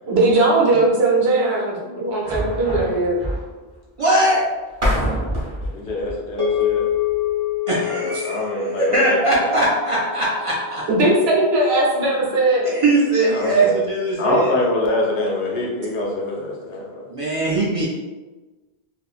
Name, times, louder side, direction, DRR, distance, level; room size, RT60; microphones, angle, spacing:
voice 1, 0.0-3.2 10.9-12.7, right 2 dB, 75° right, -4 dB, 1.0 m, -18 dB
sound 1, 2.2-3.8 4.4-4.5 4.9-5.8, right 1 dB, 10° left, 0.9 m, -27 dB
voice 2, 4.0-4.4 7.7-10.8 12.6-14.5 17.1-17.9, right 2 dB, 50° right, -6 dB, 0.4 m, -20 dB
sound 2, 4.7-7.6, left 1 dB, 30° right, 0.8 m, -28 dB
voice 3, 5.6-6.9 7.9-9.2 13.2-13.8 14.2-17.0, left 1 dB, 70° left, -2 dB, 0.9 m, -24 dB
sound 3, 6.4-10.9, left 11 dB, 30° left, 0.5 m, -26 dB
2.7 x 2.5 x 2.3 m, 1.2 s
omnidirectional pair, 1.1 m